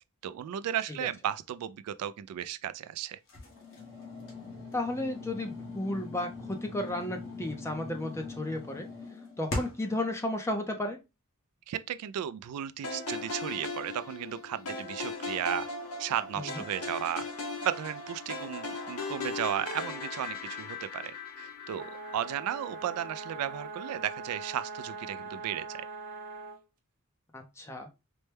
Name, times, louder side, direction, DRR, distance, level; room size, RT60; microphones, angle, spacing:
voice 1, 0.2-3.2 11.7-15.7 16.0-17.3 17.6-25.9, right 10 dB, 85° right, 0.3 m, -35 dB
sound 1, 3.3-10.0, left 2 dB, 60° left, 1.3 m, -41 dB
voice 2, 4.7-8.9 9.4-11.0 16.4-16.6 27.3-27.9, left 1 dB, 10° left, 0.5 m, -33 dB
sound 2, 12.8-23.1, left 3 dB, 90° left, 0.9 m, -38 dB
sound 3, 21.7-26.6, right 4 dB, 40° right, 0.6 m, -42 dB
4.3 x 2.1 x 3.2 m
head